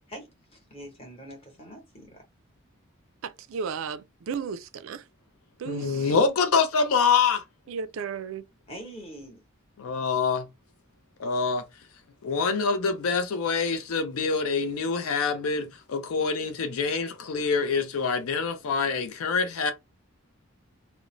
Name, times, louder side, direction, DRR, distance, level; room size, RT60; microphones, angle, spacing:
voice 1, 0.1-2.2 8.7-9.4, right 1 dB, 25° left, 1.0 m, -44 dB
voice 2, 3.2-5.0 5.6-6.1 7.7-8.5, right 6 dB, 65° right, 0.3 m, -34 dB
voice 3, 5.7-7.4 9.8-10.5 11.2-11.6 12.2-19.7, left 5 dB, 75° left, 0.5 m, -25 dB
2.5 x 2.0 x 3.0 m
head